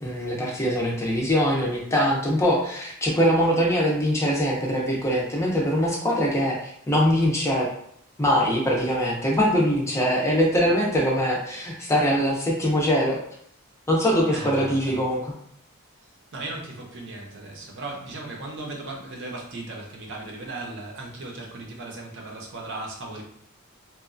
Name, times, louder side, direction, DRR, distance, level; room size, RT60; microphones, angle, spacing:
voice 1, 0.0-7.7 8.2-13.2 13.9-15.3, equal, 15° left, -2 dB, 0.5 m, -22 dB
voice 2, 14.3-15.0 16.3-23.2, right 2 dB, 60° right, 0 dB, 0.6 m, -36 dB
2.9 x 2.2 x 2.5 m, 0.69 s
head